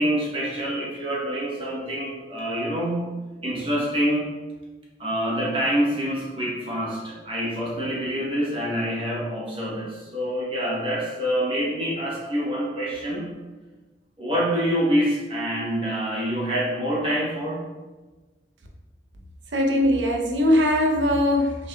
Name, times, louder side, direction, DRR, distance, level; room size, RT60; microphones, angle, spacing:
voice 1, 0.0-3.1 3.4-4.3 5.0-13.3 14.2-17.6, equal, 30° right, -5 dB, 1.1 m, -26 dB
voice 2, 19.5-21.7, left 1 dB, 85° right, 1 dB, 0.7 m, -21 dB
6.3 x 3.4 x 2.3 m, 1.2 s
head